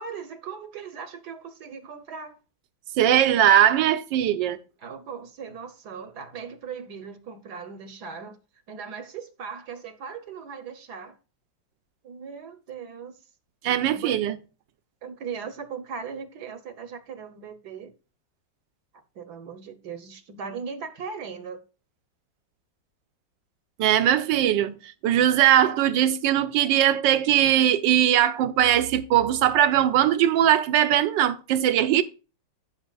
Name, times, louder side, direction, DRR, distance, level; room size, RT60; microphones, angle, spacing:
voice 1, 0.0-2.4 4.8-8.4 8.7-11.2 12.0-13.2 13.8-14.1 15.0-17.9 19.1-21.6, right 6 dB, 65° right, 1.3 m, -38 dB
voice 2, 3.0-4.6 13.6-14.3 23.8-24.7 25.0-32.0, right 11 dB, 80° right, 1.4 m, -20 dB
14.5 x 5.7 x 2.3 m
omnidirectional pair, 2.0 m